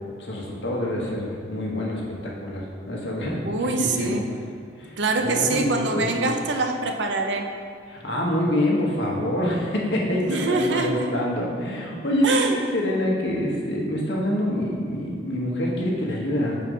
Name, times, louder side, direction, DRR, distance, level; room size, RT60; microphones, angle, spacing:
voice 1, 0.2-4.2 4.8-6.1 7.9-16.6, equal, 65° left, -3 dB, 1.3 m, -26 dB
voice 2, 3.4-4.2 5.0-7.4 10.3-10.9 12.2-12.6, right 3 dB, 70° right, 4 dB, 0.6 m, -24 dB
6.1 x 4.5 x 5.4 m, 2.2 s
head